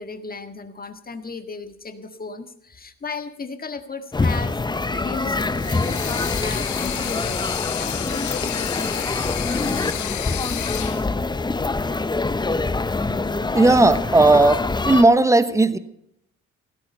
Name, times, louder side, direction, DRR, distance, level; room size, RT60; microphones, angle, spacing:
voice 1, 0.0-5.4 5.6-9.1, left 4 dB, 30° left, 8 dB, 1.7 m, -35 dB
sound 1, 4.1-15.0, left 3 dB, 15° left, 0.7 m, -25 dB
sound 2, 5.5-11.1, left 13 dB, 75° left, 0.9 m, -31 dB
voice 2, 13.5-15.8, right 2 dB, 10° right, 13 dB, 1.0 m, -15 dB
16.0 x 13.0 x 5.5 m, 0.76 s
cardioid pair, 90°, 30 cm